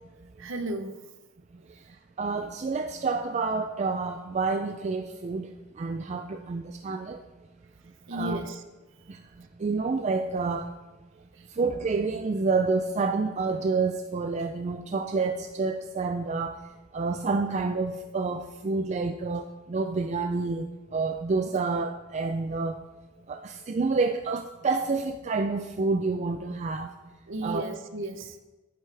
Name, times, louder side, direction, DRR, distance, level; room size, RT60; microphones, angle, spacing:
voice 1, 0.4-0.9 8.1-8.6 27.3-28.3, right 1 dB, 60° right, 8 dB, 0.8 m, -34 dB
voice 2, 2.2-7.2 8.1-8.5 9.1-9.2 9.6-10.7 11.5-16.6 16.9-22.8 23.3-26.9 27.4-27.6, right 4 dB, 30° right, 7 dB, 0.3 m, -28 dB
11.0 x 9.5 x 3.4 m, 1.1 s
head